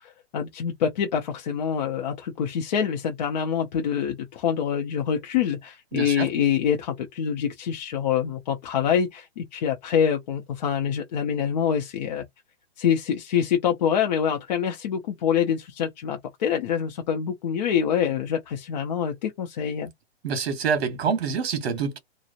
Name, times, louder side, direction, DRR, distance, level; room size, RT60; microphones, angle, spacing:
voice 1, 0.3-12.2 12.8-19.9, left 8 dB, 40° left, 0.6 m, -25 dB
voice 2, 5.9-6.3 20.2-22.0, right 6 dB, 70° right, 1.1 m, -26 dB
2.8 x 2.0 x 2.5 m
hypercardioid pair, 155°, 32 cm